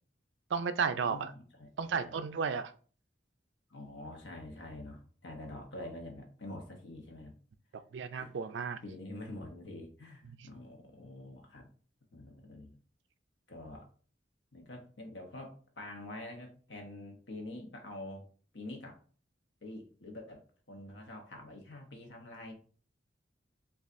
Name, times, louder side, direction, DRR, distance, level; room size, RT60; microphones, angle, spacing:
voice 1, 0.5-1.3 1.8-2.7 7.9-8.8, right 6 dB, 75° right, 10 dB, 0.4 m, -33 dB
voice 2, 1.1-2.2 3.7-7.3 8.1-8.3 8.6-11.7 12.1-12.8 13.5-13.9 14.5-18.2 18.5-18.9 19.6-22.5, left 1 dB, 75° left, 2 dB, 0.9 m, -46 dB
6.9 x 2.4 x 2.5 m, 0.42 s
head